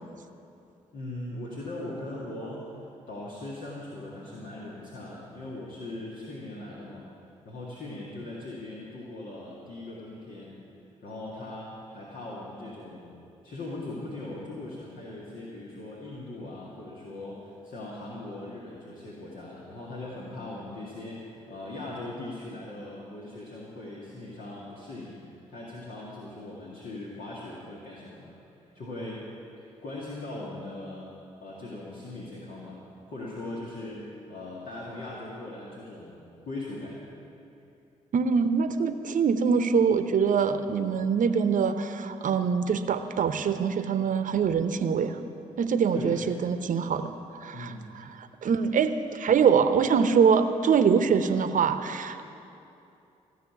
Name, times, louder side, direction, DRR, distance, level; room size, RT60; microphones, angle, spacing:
voice 1, 0.9-7.1 7.5-10.6 11.0-13.2 13.4-25.2 25.5-28.3 28.6-29.3 29.6-31.1 31.4-32.8 33.1-37.0 45.9-46.2 47.5-47.9, left 2 dB, 60° left, -5 dB, 2.2 m, -40 dB
voice 2, 38.1-45.2 45.6-47.1 47.4-47.7 48.4-52.2, right 6 dB, 55° right, 10 dB, 0.9 m, -24 dB
15.0 x 6.6 x 9.4 m, 2.7 s
hypercardioid pair, 45°, 16 cm